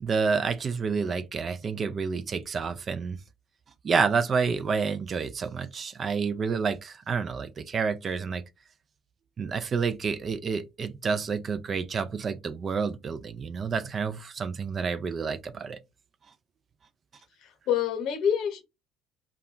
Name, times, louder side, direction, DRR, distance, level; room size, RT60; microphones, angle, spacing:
voice 1, 0.0-3.2 3.8-8.4 9.4-15.8, right 5 dB, 40° right, 0.3 m, -29 dB
voice 2, 17.4-18.6, left 8 dB, 65° left, 0.9 m, -27 dB
2.2 x 2.1 x 3.6 m
supercardioid pair, 80°, 0 cm